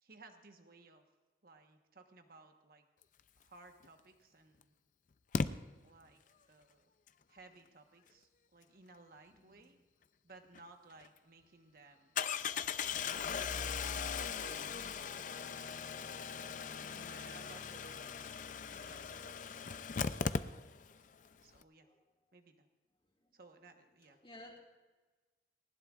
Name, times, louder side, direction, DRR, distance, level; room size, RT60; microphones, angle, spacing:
voice 1, 0.0-1.0 1.4-2.9 3.4-4.7 5.8-6.9 7.3-9.8 10.2-12.2 13.8-15.4 16.3-19.8 21.4-21.9 22.3-22.7 23.3-24.2, right 3 dB, 55° right, 5 dB, 1.2 m, -60 dB
Engine starting, 3.8-3.9 5.3-5.5 10.5-10.6 11.0-11.1 12.2-21.0 21.2-21.3 21.5-21.6, left 6 dB, 45° left, 0.5 m, -38 dB
voice 2, 9.3-9.7 16.8-17.3 20.8-21.0 21.8-22.0 23.0-23.3 24.0-24.6, left 1 dB, 30° left, -2 dB, 3.3 m, -59 dB
19.0 x 19.0 x 2.5 m, 1.2 s
head